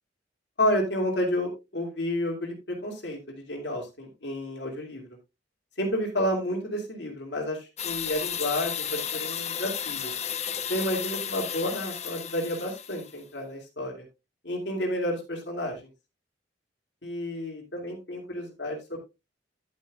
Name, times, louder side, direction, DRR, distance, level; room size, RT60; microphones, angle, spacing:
voice 1, 0.6-5.0 5.8-10.1 10.7-14.0 14.4-15.8 17.0-19.0, left 1 dB, 75° left, 1 dB, 2.6 m, -30 dB
sound 1, 7.8-13.2, left 8 dB, 40° left, 0.9 m, -33 dB
10.5 x 9.2 x 2.4 m, 0.25 s
head